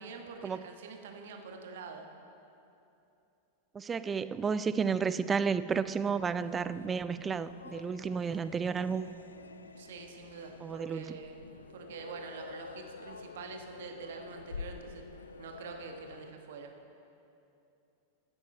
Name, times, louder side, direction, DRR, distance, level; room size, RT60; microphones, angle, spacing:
voice 1, 0.0-2.0 9.8-11.4 11.7-15.0 15.4-16.7, right 5 dB, 60° right, 4 dB, 1.1 m, -46 dB
voice 2, 3.7-9.1 10.6-11.2, right 6 dB, 20° right, 14 dB, 0.3 m, -32 dB
sound 1, 5.7-16.3, left 4 dB, 75° left, 0.4 m, -48 dB
15.5 x 8.7 x 4.4 m, 2.8 s
figure-of-eight pair, 90°, 0 cm